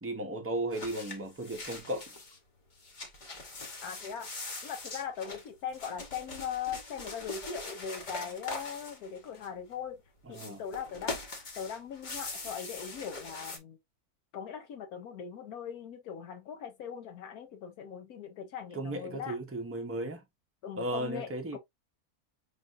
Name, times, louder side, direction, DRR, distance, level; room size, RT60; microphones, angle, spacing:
voice 1, 0.0-2.1 10.3-10.6 18.7-20.2 20.8-21.6, right 1 dB, 15° right, 0.5 m, -35 dB
sound 1, 0.7-2.4 2.7-9.7 10.3-13.6, left 2 dB, 40° left, 0.9 m, -42 dB
voice 2, 3.8-4.3 4.6-10.0 10.3-11.2 11.6-13.8 14.3-19.4 20.6-21.6, left 7 dB, 80° left, 1.2 m, -40 dB
5.3 x 2.6 x 2.4 m
omnidirectional pair, 1.6 m